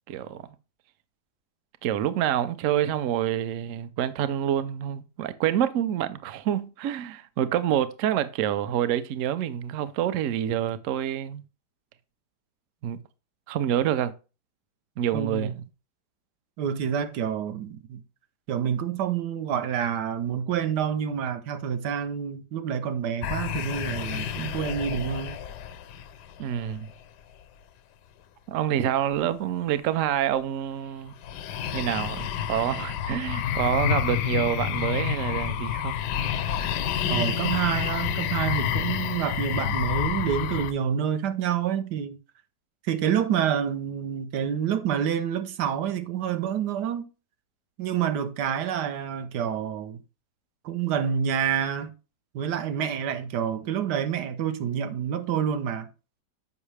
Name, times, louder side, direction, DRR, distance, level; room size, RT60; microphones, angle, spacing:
voice 1, 0.1-0.4 1.8-11.4 12.8-13.0 13.5-14.1 15.0-15.6 26.4-26.9 28.5-31.1 31.7-36.0, right 10 dB, 70° right, 0.8 m, -27 dB
voice 2, 15.1-15.5 16.6-18.0 18.5-25.4 37.1-42.2 42.8-47.1 47.8-50.0 50.6-51.9 52.3-55.9, right 8 dB, 85° right, 1.3 m, -28 dB
sound 1, 23.2-26.9 31.2-40.7, left 9 dB, 90° left, 1.2 m, -29 dB
7.2 x 5.4 x 3.2 m
omnidirectional pair, 1.8 m